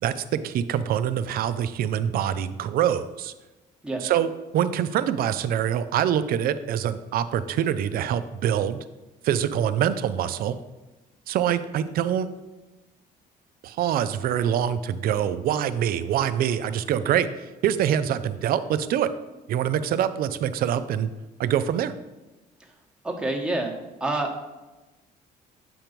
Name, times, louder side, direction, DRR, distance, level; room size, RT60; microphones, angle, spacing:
voice 1, 0.0-3.3 4.0-8.8 9.2-10.6 11.3-12.3 13.6-19.1 19.5-21.1 21.4-21.9, right 9 dB, 60° right, 13 dB, 0.4 m, -25 dB
voice 2, 23.0-23.7 24.0-24.4, right 2 dB, 5° right, 0 dB, 1.0 m, -28 dB
7.8 x 3.0 x 5.1 m, 1.1 s
cardioid pair, 110°, 17 cm